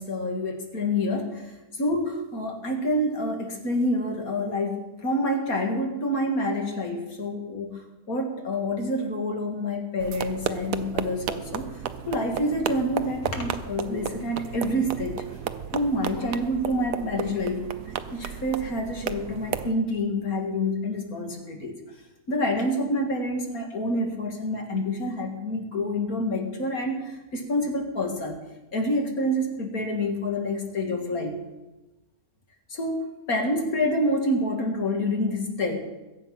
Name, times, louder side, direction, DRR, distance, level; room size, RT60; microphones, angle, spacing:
voice 1, 0.0-7.8 8.1-15.2 15.7-21.8 22.3-28.4 28.7-31.4 32.7-35.8, left 1 dB, 60° left, 3 dB, 2.6 m, -27 dB
sound 1, 10.0-19.7, right 9 dB, 80° right, 1.3 m, -33 dB
21.5 x 8.6 x 5.8 m, 1.0 s
omnidirectional pair, 1.7 m